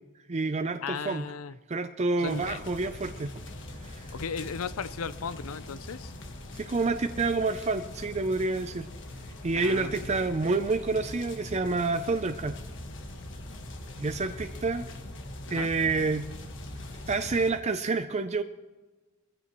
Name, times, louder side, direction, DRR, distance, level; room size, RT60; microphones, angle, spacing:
voice 1, 0.3-1.3 1.7-3.3 3.8-4.1 6.5-8.9 9.4-12.6 14.0-14.9 15.5-16.3 17.1-18.4, right 3 dB, 30° right, 8 dB, 0.5 m, -28 dB
voice 2, 0.8-1.6 2.2-2.6 4.1-6.1 9.5-10.1 14.6-14.7 15.5-15.7, left 5 dB, 85° left, 14 dB, 0.6 m, -36 dB
sound 1, 2.2-17.5, left 1 dB, 60° left, 1.6 m, -42 dB
21.5 x 15.0 x 3.1 m, 1.2 s
head